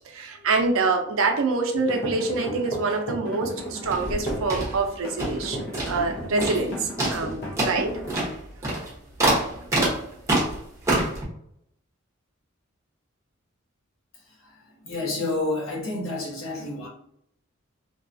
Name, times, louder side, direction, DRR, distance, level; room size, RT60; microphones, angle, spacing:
voice 1, 0.1-7.9, right 3 dB, 90° right, 4 dB, 0.5 m, -26 dB
sound 1, 1.8-4.5 5.0-8.2, equal, 55° left, 0.7 m, -34 dB
sound 2, 3.8-5.5 5.7-6.1 6.4-6.7 7.0-11.2, right 1 dB, 15° right, 0.8 m, -26 dB
voice 2, 14.1-16.9, left 2 dB, 75° left, -3 dB, 0.9 m, -30 dB
2.8 x 2.3 x 2.5 m, 0.71 s
head